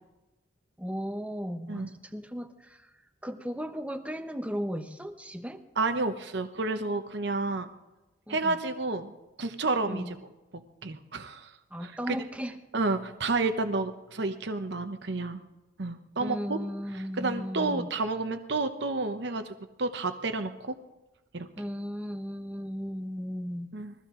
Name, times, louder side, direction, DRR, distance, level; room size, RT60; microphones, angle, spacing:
voice 1, 0.8-2.9 3.2-5.6 8.3-8.6 9.9-10.2 11.7-12.5 16.2-17.9 21.6-23.7, equal, 5° right, 7 dB, 0.9 m, -36 dB
voice 2, 5.8-7.7 8.3-10.2 10.5-11.5 11.8-12.2 12.7-15.4 15.8-16.6 16.9-20.7 21.3-21.5 23.7-23.9, right 3 dB, 60° right, 8 dB, 0.9 m, -30 dB
22.0 x 15.0 x 3.8 m, 1.0 s
head